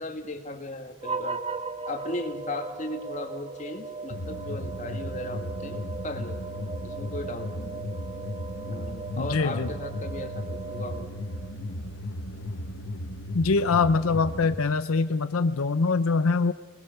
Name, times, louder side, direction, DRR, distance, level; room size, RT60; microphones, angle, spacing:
voice 1, 0.0-1.4 1.9-8.0 8.6-10.4 10.7-11.1, left 2 dB, 35° left, 4 dB, 2.2 m, -37 dB
sound 1, 1.0-11.6, right 3 dB, 30° right, 1.1 m, -38 dB
sound 2, 4.1-14.5, left 1 dB, 65° left, 1.4 m, -36 dB
voice 2, 9.2-9.7 13.3-16.5, left 4 dB, 85° left, 11 dB, 0.7 m, -23 dB
26.0 x 20.0 x 6.8 m, 1.3 s
head